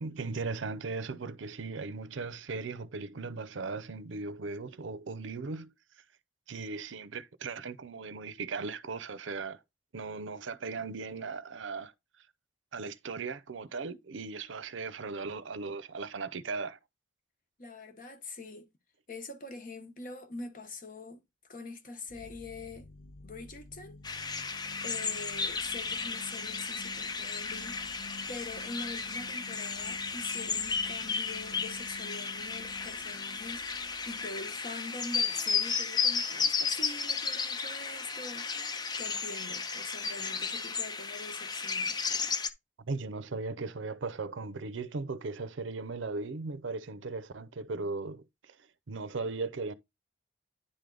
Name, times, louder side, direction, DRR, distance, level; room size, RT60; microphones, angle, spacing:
voice 1, 0.0-5.7 6.5-9.6 9.9-11.9 12.7-16.8 42.8-48.6 48.9-49.7, right 4 dB, 70° right, 0.6 m, -37 dB
voice 2, 17.6-18.7 19.1-21.2 21.5-22.9 23.2-24.0 24.3-42.0, left 3 dB, 40° left, 1.0 m, -44 dB
sound 1, 22.1-39.1 40.3-40.4, left 2 dB, 85° left, 0.9 m, -52 dB
sound 2, 24.0-42.5, left 5 dB, 20° left, 0.5 m, -34 dB
9.9 x 3.4 x 3.8 m
head